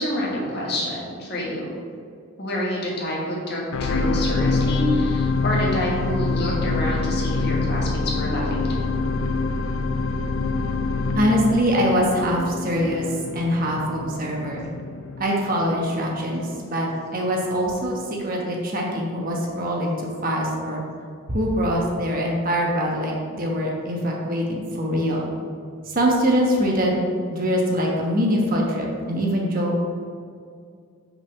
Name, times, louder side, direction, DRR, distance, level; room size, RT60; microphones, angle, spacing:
voice 1, 0.0-1.7 2.4-8.9, left 1 dB, 50° left, -3 dB, 1.5 m, -27 dB
sound 1, 3.7-16.1 16.7-16.8, left 3 dB, 70° left, 0.4 m, -25 dB
voice 2, 11.1-14.7 15.2-20.8 21.3-25.2 25.8-27.0 27.3-29.8, equal, 40° right, -1 dB, 1.1 m, -23 dB
5.7 x 4.1 x 5.8 m, 2.2 s
head